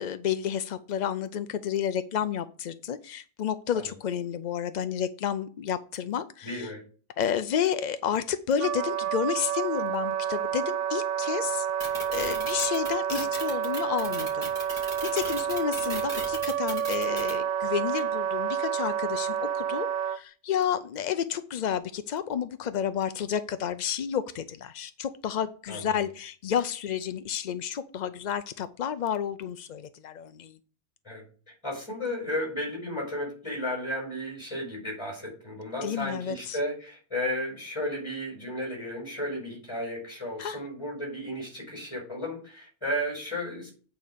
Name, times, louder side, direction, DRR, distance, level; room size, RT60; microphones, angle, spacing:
voice 1, 0.0-6.7 7.2-14.5 15.1-30.6 35.8-36.6 40.4-40.6, left 8 dB, 60° left, 0.4 m, -31 dB
voice 2, 6.4-6.8 25.7-26.0 31.0-43.7, left 1 dB, 20° left, 5.1 m, -34 dB
Wind instrument woodwind instrument, 8.6-20.2, right 9 dB, 75° right, 0.9 m, -29 dB
sound 1, 11.8-17.3, right 1 dB, 25° right, 3.5 m, -37 dB
8.6 x 4.6 x 6.7 m
omnidirectional pair, 1.3 m